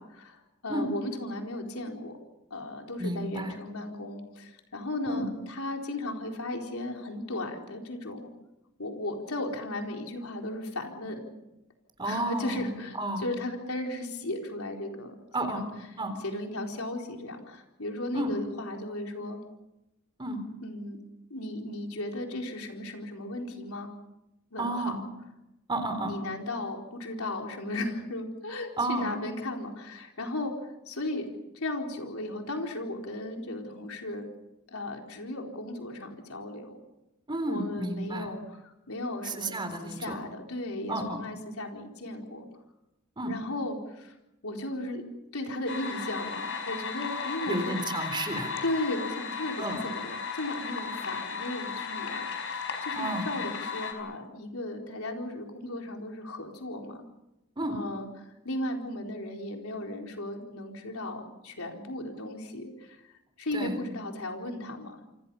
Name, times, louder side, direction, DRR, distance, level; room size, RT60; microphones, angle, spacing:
voice 1, 0.0-2.2 2.5-8.3 8.8-11.3 12.0-15.1 15.5-15.7 16.2-19.4 20.6-21.0 21.3-23.9 24.5-24.9 26.0-31.3 31.5-34.3 34.7-36.8 37.5-39.6 39.8-42.5 43.3-44.1 44.4-45.0 45.3-47.7 48.6-57.0 57.7-63.1 63.4-65.1, left 1 dB, 85° left, 2 dB, 4.3 m, -36 dB
voice 2, 3.0-3.5 5.1-5.3 12.0-13.3 15.3-15.6 16.0-16.2 18.1-18.3 20.2-20.4 24.6-25.0 25.7-26.2 28.8-29.1 37.3-38.3 39.2-40.2 40.9-41.2 43.2-43.3 47.5-48.5 49.6-49.8 52.9-53.3 57.6-57.8 63.5-63.8, right 2 dB, 20° right, 8 dB, 3.7 m, -32 dB
sound 1, 45.7-53.9, left 5 dB, 60° left, 4.9 m, -35 dB
27.0 x 26.5 x 5.6 m, 0.94 s
head